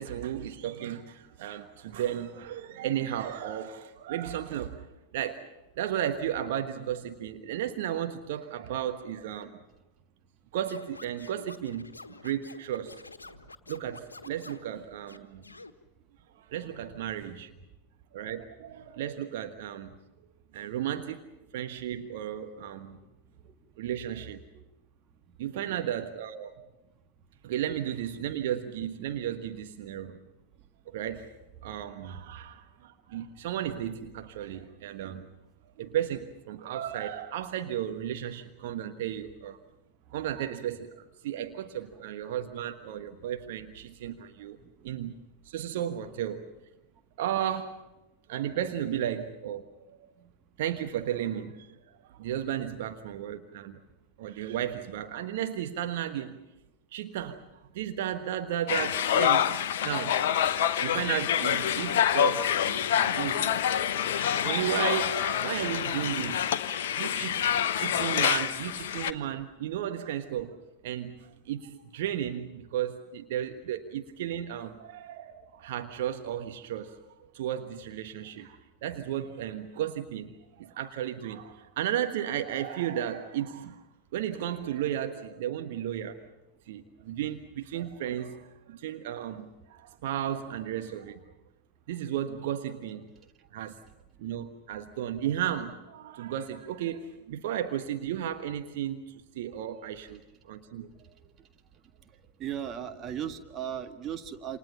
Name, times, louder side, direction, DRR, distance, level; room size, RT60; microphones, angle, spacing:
voice 1, 0.0-4.8 5.1-5.4 5.8-9.6 10.5-11.9 12.2-13.0 13.7-15.4 16.5-17.5 18.1-19.9 20.5-21.2 21.5-23.0 23.8-24.4 25.4-26.6 27.4-30.2 30.9-31.3 31.6-35.3 35.8-39.6 40.1-44.6 44.8-45.1 45.4-46.5 47.2-47.7 48.3-50.1 50.6-51.8 52.0-53.8 54.2-56.4 56.9-57.4 57.7-59.5 59.8-60.2 60.8-70.6 70.8-77.0 77.3-83.8 84.1-86.2 86.7-91.2 91.9-93.1 93.5-93.8 94.2-100.9, right 10 dB, 55° right, 7 dB, 1.4 m, -34 dB
Scratching (performance technique), 10.7-14.7 15.1-15.7, left 3 dB, 80° left, 1.4 m, -47 dB
voice 2, 23.4-23.9 24.5-24.6 25.5-25.8 46.0-46.2 102.4-104.6, right 9 dB, 30° right, 7 dB, 1.8 m, -37 dB
sound 1, 58.7-69.1, left 9 dB, 55° left, 1.0 m, -27 dB
28.5 x 27.5 x 5.6 m, 1.0 s
figure-of-eight pair, 90°, 0 cm